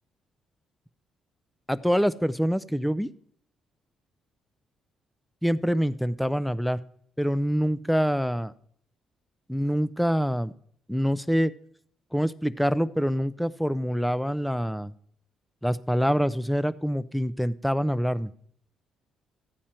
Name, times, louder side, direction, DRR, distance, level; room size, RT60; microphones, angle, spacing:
voice 1, 1.7-3.1 5.4-6.8 7.2-8.5 9.5-10.5 10.9-11.5 12.1-14.9 15.6-18.3, equal, ahead, 17 dB, 0.5 m, -25 dB
14.0 x 9.0 x 4.4 m, 0.65 s
cardioid pair, 85°, 0 cm